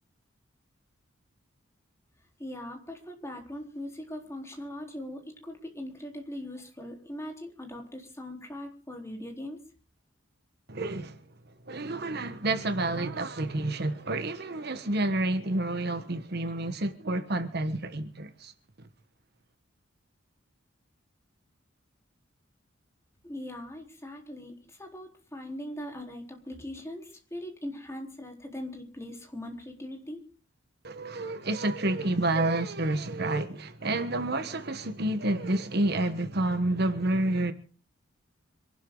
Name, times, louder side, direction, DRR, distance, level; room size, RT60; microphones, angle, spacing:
voice 1, 2.4-9.6 23.2-30.2, left 1 dB, 15° left, 4.0 m, -40 dB
voice 2, 10.7-11.2 11.7-18.5 30.8-37.5, right 2 dB, 55° right, 1.3 m, -29 dB
26.0 x 12.5 x 3.9 m
head